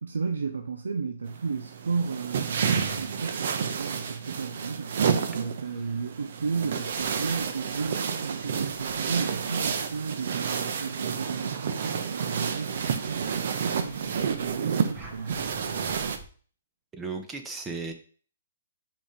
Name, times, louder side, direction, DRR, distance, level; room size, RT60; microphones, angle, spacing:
voice 1, 0.0-5.0 5.3-15.6, right 5 dB, 85° right, 0.7 m, -34 dB
sound 1, 1.3-16.2, right 6 dB, 60° right, 0.9 m, -30 dB
sound 2, 6.4-10.1 10.6-16.3, right 2 dB, 30° right, 2.0 m, -51 dB
voice 2, 16.9-17.9, right 4 dB, 15° right, 0.8 m, -35 dB
5.3 x 5.1 x 5.1 m
hypercardioid pair, 140°, 0 cm